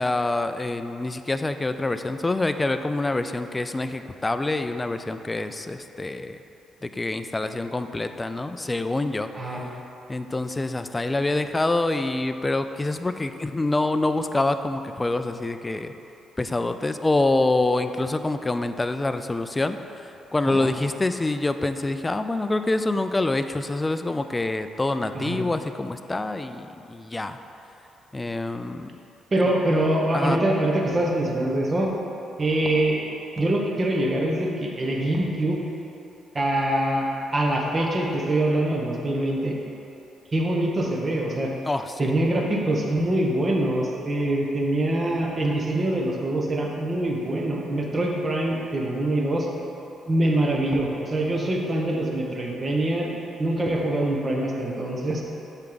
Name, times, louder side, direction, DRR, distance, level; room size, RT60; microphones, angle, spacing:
voice 1, 0.0-6.4 6.8-9.6 10.1-15.9 16.4-27.4 28.1-28.9 30.1-30.4 41.7-42.1, left 2 dB, 20° left, 9 dB, 0.3 m, -26 dB
voice 2, 29.3-31.9 32.4-33.0 33.4-35.6 36.3-37.1 37.3-39.5 40.3-41.5 42.0-49.5 50.1-53.1 53.4-55.2, right 1 dB, 30° right, -1 dB, 1.0 m, -24 dB
7.1 x 4.5 x 3.9 m, 2.9 s
cardioid pair, 90°, 0 cm